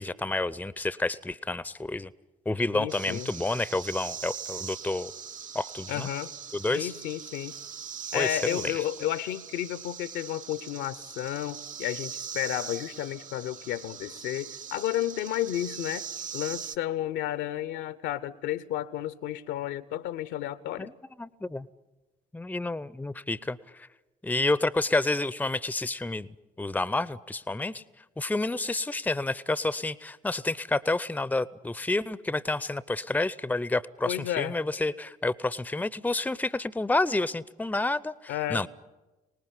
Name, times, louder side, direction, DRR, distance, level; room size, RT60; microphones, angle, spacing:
voice 1, 0.0-2.1 2.5-5.1 5.5-6.1 6.5-6.9 8.1-8.8 20.8-20.9 21.2-21.7 22.3-23.9 24.2-26.3 26.6-27.8 28.2-38.7, left 2 dB, 5° left, 20 dB, 0.8 m, -29 dB
voice 2, 2.7-3.3 5.9-6.3 6.7-7.6 8.1-16.1 16.3-20.9 34.1-34.5 38.3-38.6, left 13 dB, 60° left, 17 dB, 0.9 m, -32 dB
sound 1, 2.9-16.8, right 7 dB, 40° right, 0.9 m, -41 dB
25.0 x 19.5 x 9.8 m, 1.1 s
figure-of-eight pair, 45°, 21 cm